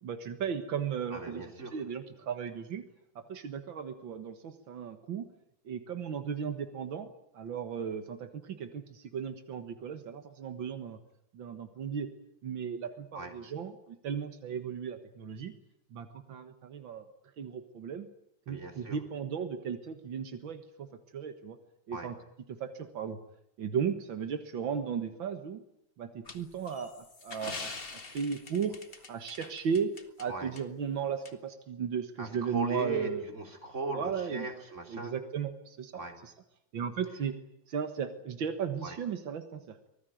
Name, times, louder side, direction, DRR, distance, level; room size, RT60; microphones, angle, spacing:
voice 1, 0.0-2.8 3.3-5.3 5.7-11.0 11.3-12.1 12.4-15.5 15.9-17.1 17.4-18.1 18.5-20.9 21.1-21.6 21.9-22.2 22.5-23.2 23.6-25.6 26.0-27.7 28.1-28.8 29.1-29.9 30.2-33.3 33.9-34.5 34.9-36.3 36.7-37.3 37.7-39.8, right 7 dB, 85° right, 8 dB, 2.3 m, -36 dB
voice 2, 1.1-1.8 13.1-13.3 18.5-19.0 21.9-22.1 30.3-30.5 32.2-35.1 35.9-36.2 38.8-39.0, right 3 dB, 40° right, 3 dB, 4.2 m, -38 dB
sound 1, 26.3-30.3 30.6-30.7 31.3-31.4, left 3 dB, 30° left, 1.9 m, -44 dB
24.5 x 19.5 x 9.3 m, 0.75 s
omnidirectional pair, 2.0 m